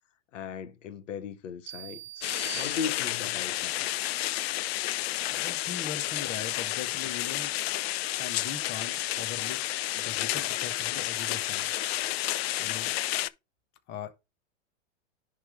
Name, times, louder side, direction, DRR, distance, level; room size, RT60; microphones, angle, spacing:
voice 1, 0.3-3.9, left 7 dB, 80° left, 1.1 m, -38 dB
sound 1, 1.7-3.5, right 17 dB, 90° right, 0.6 m, -43 dB
sound 2, 2.2-13.3, left 16 dB, 55° left, 0.6 m, -31 dB
voice 2, 5.3-7.5 8.2-9.6 9.9-11.7 12.6-13.0 13.9-14.1, left 8 dB, 30° left, 1.2 m, -40 dB
10.5 x 3.6 x 4.8 m
hypercardioid pair, 135°, 37 cm